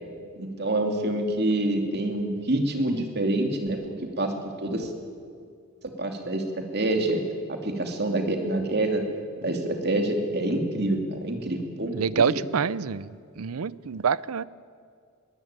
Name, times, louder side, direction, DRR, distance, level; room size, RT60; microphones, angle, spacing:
voice 1, 0.4-3.8 4.2-4.3 4.6-4.9 6.0-6.4 6.7-7.2 7.5-9.0 9.4-12.5, right 1 dB, 50° right, 4 dB, 2.8 m, -26 dB
voice 2, 11.9-13.1 13.4-14.4, right 6 dB, 85° right, 20 dB, 0.6 m, -26 dB
22.0 x 18.0 x 9.1 m, 2.2 s
head